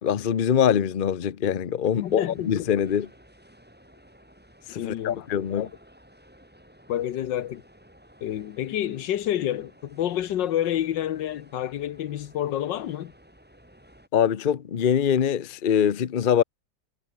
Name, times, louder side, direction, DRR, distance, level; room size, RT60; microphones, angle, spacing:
voice 1, 0.0-3.1 4.7-5.7 14.1-16.4, left 8 dB, 45° left, 0.7 m, -23 dB
sound 1, 1.9-14.1, equal, 5° right, 3.6 m, -54 dB
voice 2, 2.0-2.7 4.7-5.2 5.5-5.7 6.9-7.6 8.2-13.1, left 11 dB, 85° left, 1.6 m, -29 dB
omnidirectional pair, 1.9 m